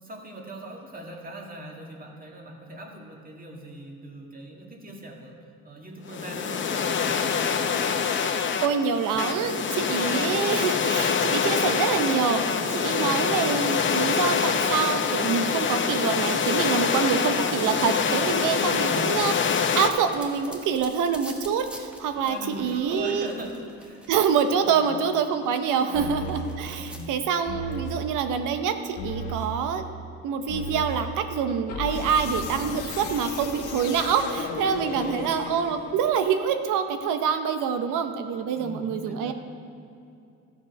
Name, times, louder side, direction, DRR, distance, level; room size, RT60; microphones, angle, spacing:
voice 1, 0.0-5.4 5.6-7.2 9.9-10.4 12.9-13.3 17.0-17.2 18.5-19.2 22.2-24.0 24.6-24.9 25.8-26.1 26.7-27.1 34.7-35.4 38.5-39.3, right 1 dB, 30° right, 0 dB, 1.9 m, -40 dB
sound 1, 6.1-19.9, left 6 dB, 40° left, 0.7 m, -25 dB
voice 2, 8.3-19.3 19.8-23.3 24.1-29.8 30.2-39.3, right 7 dB, 90° right, 8 dB, 0.8 m, -26 dB
sound 2, 19.8-24.8 25.2-27.2, equal, 5° right, 1.1 m, -47 dB
sound 3, 25.9-26.5 27.5-28.0 29.0-29.5 30.5-31.0 31.7-36.1, left 3 dB, 85° left, 1.3 m, -34 dB
13.0 x 7.1 x 5.3 m, 2.5 s
cardioid pair, 90°, 30 cm